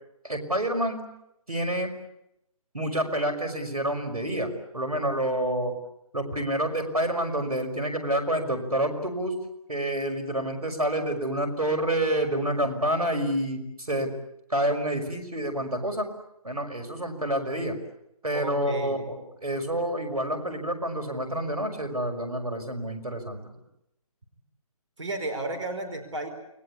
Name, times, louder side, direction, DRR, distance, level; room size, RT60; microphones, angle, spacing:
voice 1, 0.2-1.0 1.5-1.9 2.7-5.7 6.1-9.4 9.7-14.1 14.5-16.1 16.4-17.8 18.2-23.4, right 1 dB, 80° right, 5 dB, 5.9 m, -28 dB
voice 2, 18.3-19.0 25.0-26.3, right 2 dB, 55° right, 7 dB, 5.0 m, -33 dB
29.0 x 21.5 x 8.5 m, 0.83 s
figure-of-eight pair, 145°, 19 cm